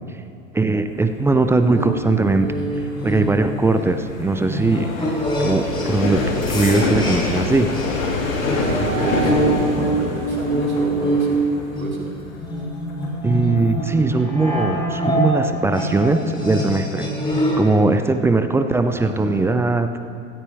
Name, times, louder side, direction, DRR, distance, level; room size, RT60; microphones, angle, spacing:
voice 1, 0.5-2.6 3.0-6.2 6.5-7.8 13.2-20.0, right 3 dB, 5° right, 9 dB, 0.4 m, -20 dB
sound 1, 0.9-15.5 15.9-16.3 16.6-16.9, left 3 dB, 75° left, 2.6 m, -27 dB
sound 2, 1.7-7.5 7.7-17.7, right 1 dB, 10° left, 3.2 m, -25 dB
voice 2, 8.6-11.4 11.8-12.1 18.9-19.5, right 2 dB, 90° right, -1 dB, 2.6 m, -29 dB
16.5 x 14.5 x 3.5 m, 2.7 s
hypercardioid pair, 95°, 41 cm